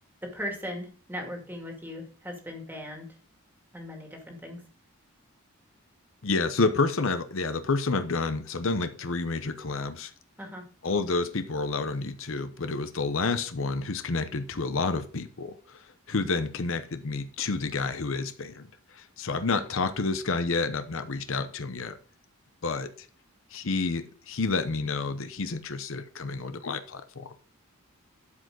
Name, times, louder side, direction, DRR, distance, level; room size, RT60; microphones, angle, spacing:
voice 1, 0.2-3.1 3.7-4.6 10.4-10.7, equal, 10° right, 2 dB, 2.1 m, -38 dB
voice 2, 6.2-10.1 10.8-18.6 18.9-22.0 22.6-22.9 23.5-27.3, left 3 dB, 60° left, 10 dB, 0.8 m, -29 dB
12.0 x 5.2 x 3.8 m, 0.41 s
head